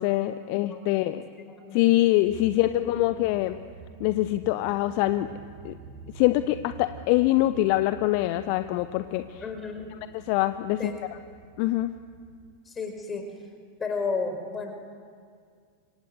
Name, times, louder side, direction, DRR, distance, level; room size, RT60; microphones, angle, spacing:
voice 1, 0.0-1.2 1.7-3.6 4.0-5.3 5.6-5.7 6.1-9.4 10.2-10.9 11.6-11.9, left 16 dB, 45° left, 11 dB, 0.8 m, -24 dB
voice 2, 0.6-1.0 1.3-1.8 2.5-3.2 9.4-9.9 10.8-11.0 12.6-13.5 13.8-14.7, left 4 dB, 20° left, 5 dB, 5.1 m, -34 dB
sound 1, 2.2-12.5, right 5 dB, 50° right, 2.3 m, -48 dB
26.0 x 25.5 x 8.1 m, 2.1 s
figure-of-eight pair, 90°, 0 cm